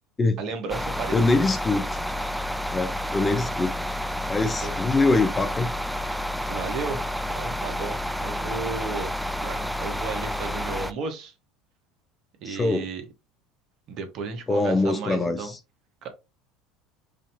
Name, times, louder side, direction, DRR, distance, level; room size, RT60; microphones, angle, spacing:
voice 1, 0.4-1.5 4.6-4.7 6.5-9.1 9.4-11.3 12.4-13.0 13.9-15.5 16.0-16.1, right 4 dB, 55° right, 1.2 m, -34 dB
sound 1, 0.7-10.9, left 1 dB, 5° right, 0.4 m, -30 dB
voice 2, 1.1-1.8 2.7-3.8 4.3-5.7 12.5-12.9 14.5-15.6, left 3 dB, 25° left, 0.8 m, -23 dB
5.0 x 2.8 x 2.6 m
hypercardioid pair, 80°, 0 cm